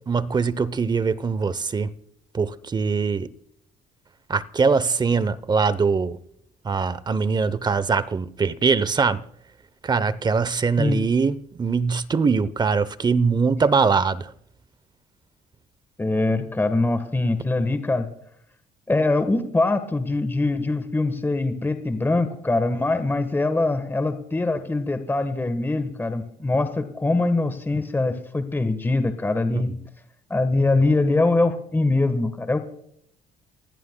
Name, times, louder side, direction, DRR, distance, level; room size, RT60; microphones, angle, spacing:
voice 1, 0.1-1.9 2.3-3.3 4.3-6.2 6.6-9.2 9.8-14.3 29.5-29.6, right 5 dB, 25° right, 0.7 m, -22 dB
voice 2, 16.0-18.1 18.9-29.7 30.3-32.6, left 2 dB, 10° left, 1.3 m, -23 dB
30.0 x 16.5 x 2.2 m
cardioid pair, 110°, 17 cm